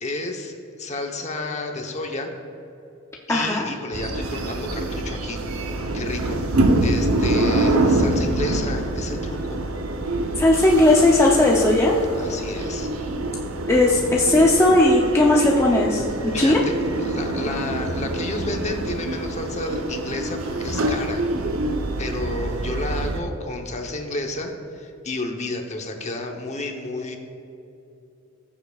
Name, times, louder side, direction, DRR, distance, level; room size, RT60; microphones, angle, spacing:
voice 1, 0.0-2.3 3.3-6.4 6.8-9.6 12.2-12.9 16.3-21.2 22.0-27.2, left 2 dB, 35° left, 3 dB, 0.9 m, -31 dB
voice 2, 3.3-3.6 10.4-11.9 13.7-16.6, left 2 dB, 15° left, -3 dB, 0.6 m, -17 dB
sound 1, 3.9-23.2, right 2 dB, 90° right, 0.8 m, -25 dB
18.0 x 7.2 x 2.4 m, 2.8 s
head